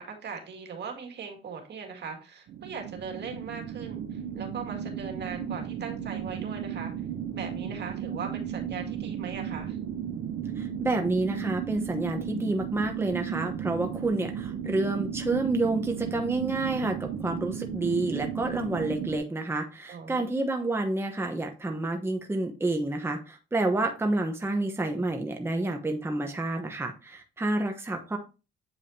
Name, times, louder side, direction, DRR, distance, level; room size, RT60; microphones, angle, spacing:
voice 1, 0.0-6.9 7.3-9.8 19.9-20.3, right 5 dB, 60° right, 4 dB, 2.0 m, -39 dB
sound 1, 2.5-19.2, right 8 dB, 80° right, 0.8 m, -34 dB
voice 2, 10.6-28.2, right 2 dB, 10° right, 3 dB, 1.0 m, -29 dB
8.5 x 4.9 x 2.7 m, 0.32 s
cardioid pair, 90°, 20 cm